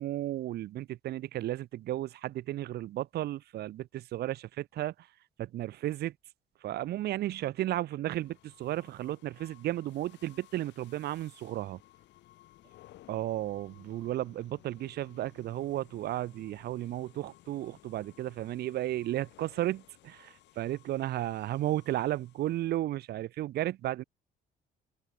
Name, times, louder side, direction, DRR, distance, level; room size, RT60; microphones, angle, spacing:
voice 1, 0.0-5.1 5.4-6.1 6.6-11.8 13.1-24.0, right 14 dB, 60° right, 1.1 m, -34 dB
sound 1, 8.0-22.8, left 15 dB, 75° left, 2.8 m, -59 dB
cardioid pair, 165°, 19 cm